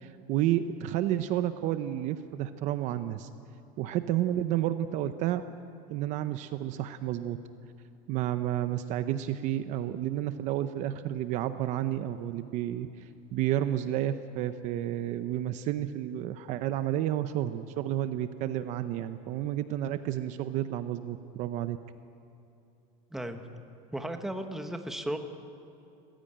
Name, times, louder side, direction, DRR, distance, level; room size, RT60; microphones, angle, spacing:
voice 1, 0.0-3.3 3.8-5.4 5.9-7.4 8.1-21.8, right 12 dB, 45° right, 11 dB, 0.7 m, -31 dB
voice 2, 23.1-23.4 23.9-25.2, right 1 dB, ahead, 6 dB, 1.1 m, -35 dB
23.0 x 15.5 x 8.8 m, 2.7 s
cardioid pair, 165°, 17 cm